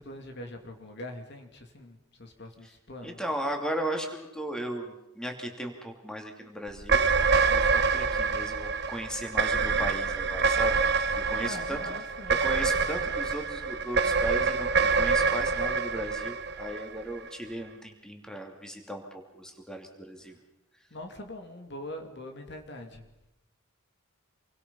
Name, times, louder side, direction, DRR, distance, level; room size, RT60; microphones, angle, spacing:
voice 1, 0.0-3.2 11.4-12.4 20.9-23.1, left 1 dB, 55° left, 5 dB, 2.7 m, -42 dB
voice 2, 3.0-10.8 11.1-11.8 12.4-20.3, right 1 dB, 5° left, 3 dB, 2.8 m, -36 dB
sound 1, 6.8-17.3, right 5 dB, 50° right, 1.0 m, -26 dB
28.0 x 23.5 x 5.6 m, 0.92 s
head